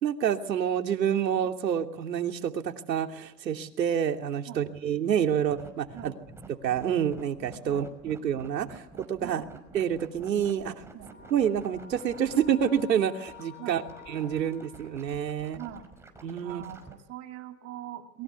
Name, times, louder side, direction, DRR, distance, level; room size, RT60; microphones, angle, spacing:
voice 1, 0.0-6.1 6.6-9.4 9.7-10.8 11.3-13.8 14.1-15.6 16.2-16.6, right 9 dB, 90° right, 5 dB, 3.0 m, -28 dB
sound 1, 5.3-16.9, right 3 dB, 5° right, 5.4 m, -49 dB
sound 2, 11.1-15.5, left 7 dB, 25° left, 7.0 m, -51 dB
voice 2, 15.5-15.9 16.4-18.2, right 12 dB, 30° right, 5 dB, 2.6 m, -42 dB
29.0 x 23.0 x 8.4 m, 0.82 s
hypercardioid pair, 135°, 49 cm